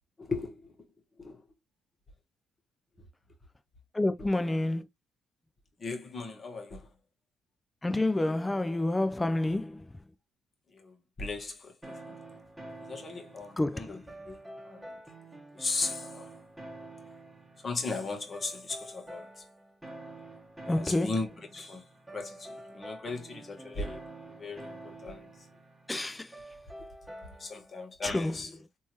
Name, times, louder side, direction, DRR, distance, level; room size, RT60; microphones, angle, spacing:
voice 1, 0.2-0.7 1.2-1.4 5.8-6.9 10.7-12.0 12.9-14.0 14.3-15.0 15.5-16.2 17.6-19.3 20.7-21.3 21.5-21.8 22.1-25.3 27.4-28.5, left 3 dB, 35° left, 1.4 m, -37 dB
voice 2, 3.9-4.9 7.8-9.9 13.6-14.0 20.7-21.1 25.9-26.3 28.0-28.3, left 2 dB, 15° left, 0.5 m, -28 dB
sound 1, 11.8-27.7, right 1 dB, 5° right, 1.7 m, -48 dB
3.5 x 2.8 x 3.0 m
cardioid pair, 90°, 0 cm